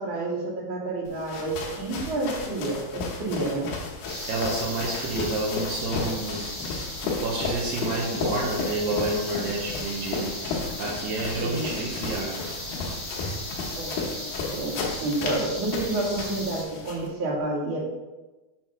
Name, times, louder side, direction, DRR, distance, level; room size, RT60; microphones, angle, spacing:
voice 1, 0.0-3.7 11.4-11.7 13.7-14.1 14.5-17.8, right 2 dB, 50° right, -4 dB, 1.7 m, -29 dB
sound 1, 1.1-17.1, left 4 dB, 90° left, 3.1 m, -34 dB
sound 2, 4.1-16.6, left 1 dB, 45° left, 1.9 m, -37 dB
voice 2, 4.3-12.5 13.1-13.4, right 2 dB, 75° right, -3 dB, 2.2 m, -30 dB
7.3 x 3.0 x 5.5 m, 1.1 s
omnidirectional pair, 4.4 m